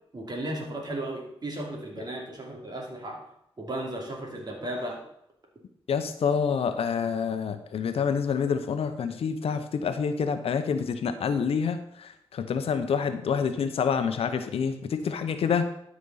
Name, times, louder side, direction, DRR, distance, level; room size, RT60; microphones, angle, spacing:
voice 1, 0.1-3.2 3.6-5.0, right 1 dB, 45° right, 0 dB, 2.9 m, -35 dB
voice 2, 5.9-15.7, left 6 dB, 80° left, 9 dB, 0.8 m, -27 dB
12.5 x 5.3 x 4.1 m, 0.75 s
cardioid pair, 65°, 10 cm